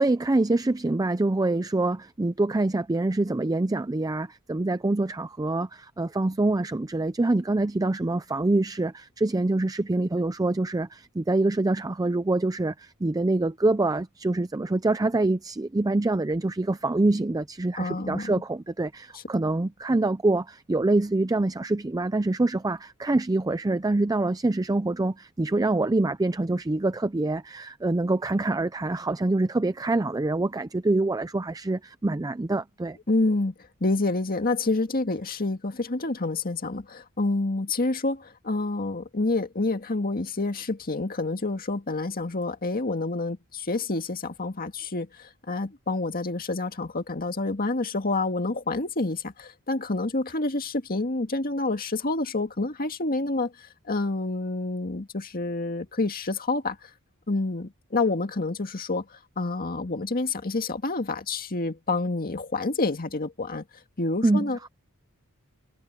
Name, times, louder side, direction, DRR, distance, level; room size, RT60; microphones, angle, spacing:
voice 1, 0.0-33.0 64.2-64.7, right 2 dB, 15° right, 0.5 m, -25 dB
voice 2, 17.8-18.3 33.1-33.5 33.8-56.9 57.3-63.6 64.0-64.6, left 2 dB, 40° left, 1.9 m, -28 dB
head